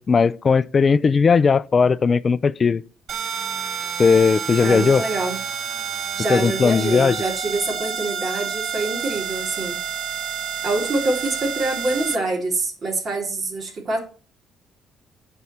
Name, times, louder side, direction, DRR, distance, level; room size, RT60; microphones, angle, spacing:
voice 1, 0.0-2.8 4.0-5.0 6.3-7.2, left 5 dB, 30° left, 0.4 m, -17 dB
sound 1, 3.1-12.2, right 7 dB, 55° right, 1.0 m, -29 dB
voice 2, 4.6-5.4 6.0-9.8 10.6-14.0, right 2 dB, 40° right, 3.2 m, -25 dB
9.7 x 4.6 x 7.2 m
cardioid pair, 120°, 0 cm